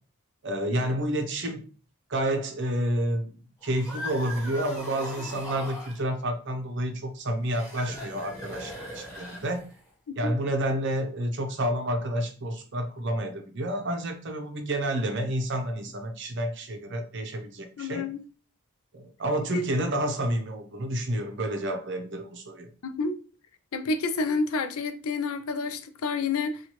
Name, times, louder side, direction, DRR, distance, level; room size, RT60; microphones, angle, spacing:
voice 1, 0.4-1.6 2.1-3.3 3.6-9.6 10.2-18.1 18.9-22.7, right 1 dB, 55° right, 0.7 m, -29 dB
sound 1, 3.6-6.0 7.4-9.9, left 1 dB, 15° left, 0.9 m, -40 dB
voice 2, 17.8-18.2 19.5-19.7 22.8-23.2 23.7-26.6, left 4 dB, 75° left, 0.5 m, -29 dB
4.4 x 2.3 x 2.9 m
head